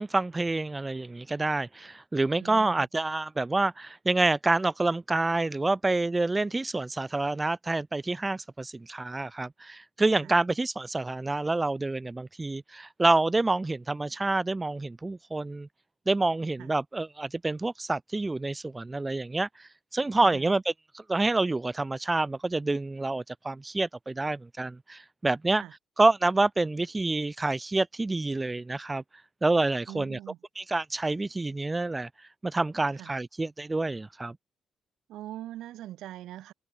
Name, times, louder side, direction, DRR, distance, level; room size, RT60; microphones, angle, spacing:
voice 1, 0.0-15.7 16.1-20.6 21.1-25.6 26.0-29.0 29.4-30.2 30.6-32.1 32.4-34.3, right 2 dB, 20° right, 0.3 m, -27 dB
voice 2, 2.3-2.9 10.2-10.3 16.6-16.7 20.2-20.5 25.6-25.7 29.9-30.4 32.9-33.1 35.1-36.5, right 13 dB, 85° right, 2.4 m, -42 dB
cardioid pair, 90°, 0 cm